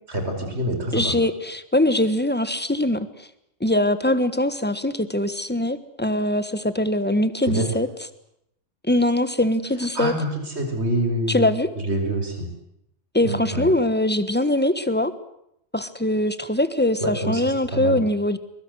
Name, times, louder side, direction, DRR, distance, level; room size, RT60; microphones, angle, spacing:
voice 1, 0.1-1.2 7.4-7.7 9.9-11.5 11.8-12.5 13.2-13.7 17.0-17.4 17.7-18.0, right 1 dB, 60° right, 5 dB, 5.3 m, -26 dB
voice 2, 0.9-3.3 3.6-7.9 8.9-10.1 11.3-11.7 13.1-15.1 15.7-18.4, left 1 dB, 10° left, 12 dB, 1.4 m, -22 dB
23.5 x 22.0 x 8.1 m, 0.77 s
omnidirectional pair, 1.3 m